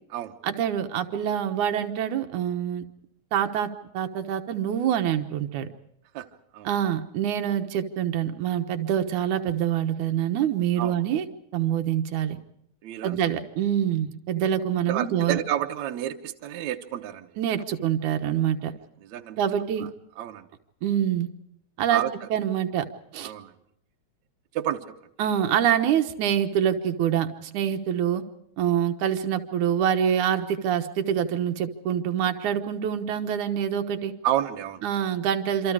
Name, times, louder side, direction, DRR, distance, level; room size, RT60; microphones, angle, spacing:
voice 1, 0.4-2.8 3.3-5.7 6.6-11.3 11.5-12.4 13.0-15.4 17.4-18.7 19.4-19.9 20.8-21.3 21.8-22.0 22.3-22.9 23.1-23.3 25.2-28.2 28.6-34.1 34.8-35.7, right 9 dB, 90° right, 6 dB, 2.7 m, -25 dB
voice 2, 12.8-13.2 14.9-17.3 19.0-19.4 19.8-19.9 20.2-20.5 21.9-22.3 23.2-23.5 24.5-24.9 34.2-34.8, right 11 dB, 75° right, 5 dB, 2.4 m, -30 dB
27.0 x 26.0 x 4.9 m, 0.74 s
omnidirectional pair, 3.4 m